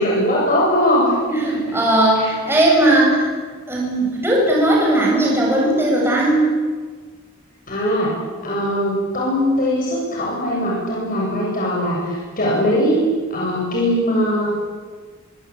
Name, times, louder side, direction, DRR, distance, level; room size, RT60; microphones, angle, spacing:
voice 1, 0.0-1.8 2.2-2.3 7.7-8.1 8.4-13.0 13.3-14.6, equal, 45° left, -4 dB, 7.7 m, -20 dB
voice 2, 1.4-3.3 3.7-6.5, right 1 dB, 10° right, -3 dB, 7.9 m, -17 dB
25.0 x 23.5 x 8.8 m, 1.5 s
head